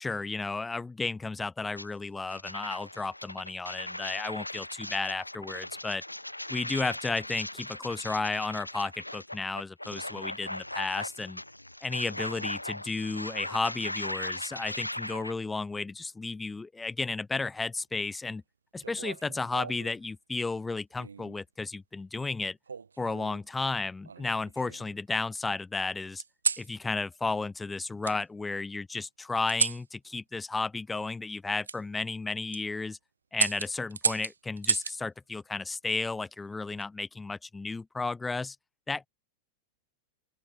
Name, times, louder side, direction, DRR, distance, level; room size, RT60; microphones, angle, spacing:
voice 1, 0.0-6.0 6.5-11.4 11.8-18.4 18.7-22.6 23.0-26.2 26.6-33.0 33.3-38.6 38.9-39.1, left 3 dB, 10° left, 1.6 m, -33 dB
sound 1, 1.7-1.9 2.3-15.3, left 1 dB, 85° left, 0.6 m, -39 dB
sound 2, 18.8-20.0 21.0-21.4 22.7-23.4 24.1-25.0 26.2-26.7 28.0-28.2 29.5-29.9 31.6-31.8 32.3-32.6 33.3-35.0 36.5-36.9, right 5 dB, 75° right, 2.6 m, -33 dB
open air
figure-of-eight pair, 90°, 0 cm